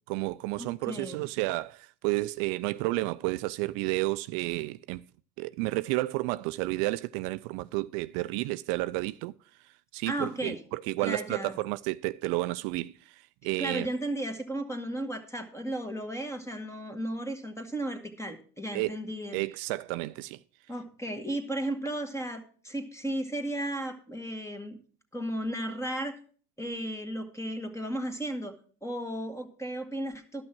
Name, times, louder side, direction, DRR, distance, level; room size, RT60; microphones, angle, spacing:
voice 1, 0.1-5.0 5.4-9.3 9.6-13.9 18.7-19.0 19.3-20.4, right 20 dB, 70° right, 0.5 m, -31 dB
voice 2, 0.6-1.2 10.1-10.6 11.0-11.5 13.6-19.4 20.7-24.8 25.1-26.1 26.6-28.5 28.8-30.4, right 1 dB, 5° left, 1.9 m, -34 dB
12.5 x 6.0 x 5.9 m
hypercardioid pair, 75°, 44 cm